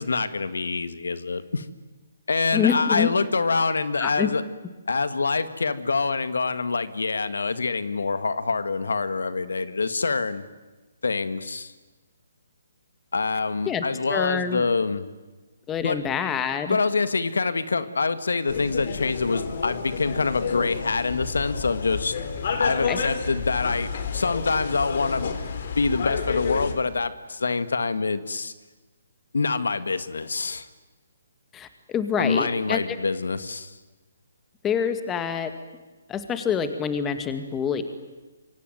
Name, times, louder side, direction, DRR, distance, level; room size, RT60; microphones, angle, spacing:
voice 1, 0.0-1.7 2.3-4.4 4.9-10.4 11.0-11.7 13.1-15.0 15.8-16.0 16.7-22.1 22.6-25.4 25.8-28.5 29.3-30.7 32.2-33.7, left 4 dB, 85° left, 12 dB, 1.9 m, -25 dB
voice 2, 2.5-3.1 4.0-4.3 13.7-13.8 14.1-14.6 15.7-16.8 22.9-23.0 31.5-32.8 34.6-35.5 36.1-37.8, left 7 dB, 15° left, 9 dB, 2.1 m, -26 dB
sound 1, 18.5-26.7, left 6 dB, 55° left, 3.7 m, -30 dB
26.5 x 24.5 x 9.3 m, 1.2 s
hypercardioid pair, 155°, 0 cm